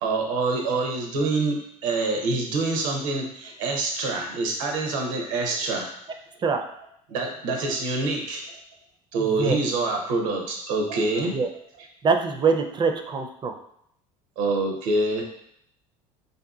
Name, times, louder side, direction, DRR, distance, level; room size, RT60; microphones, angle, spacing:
voice 1, 0.0-5.9 7.1-8.4 9.1-11.3 14.4-15.2, right 3 dB, 90° right, 2 dB, 0.7 m, -26 dB
voice 2, 12.0-13.6, right 5 dB, 30° right, 5 dB, 0.4 m, -23 dB
3.4 x 2.7 x 2.3 m, 0.71 s
supercardioid pair, 90°, 16 cm